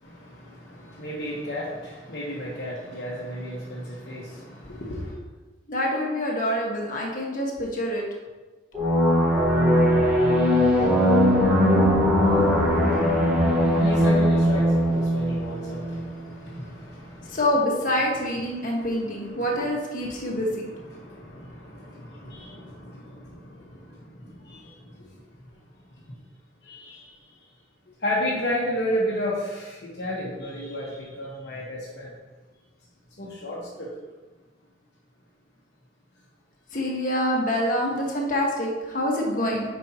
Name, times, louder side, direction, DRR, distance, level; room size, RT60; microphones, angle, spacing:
voice 1, 0.0-5.1 12.2-17.4 18.3-19.6 19.9-23.8 24.4-24.6 26.6-27.1 28.0-32.1 33.2-33.9, equal, 60° left, -7 dB, 1.3 m, -33 dB
voice 2, 5.7-8.0 17.3-20.7 36.7-39.6, left 1 dB, 45° left, -2 dB, 1.5 m, -26 dB
sound 1, 8.7-16.1, equal, 10° right, 1.4 m, -20 dB
9.3 x 5.5 x 2.9 m, 1.3 s
head